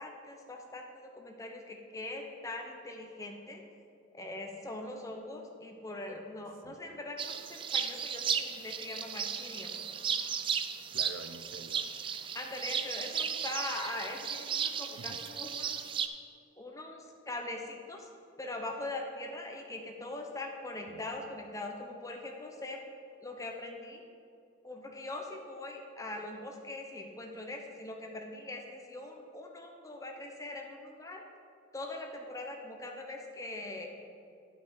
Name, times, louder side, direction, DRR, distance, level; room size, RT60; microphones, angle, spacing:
voice 1, 0.0-3.6 4.1-9.8 12.3-15.8 16.6-18.1 18.4-22.8 23.2-24.0 24.6-31.2 31.7-33.9, left 2 dB, 15° left, 2 dB, 0.8 m, -42 dB
sound 1, 7.2-16.1, right 7 dB, 25° right, 0.3 m, -35 dB
voice 2, 10.9-11.9 15.0-15.3 20.9-21.3, right 4 dB, 90° right, 9 dB, 0.5 m, -48 dB
10.5 x 5.9 x 4.5 m, 2.5 s
head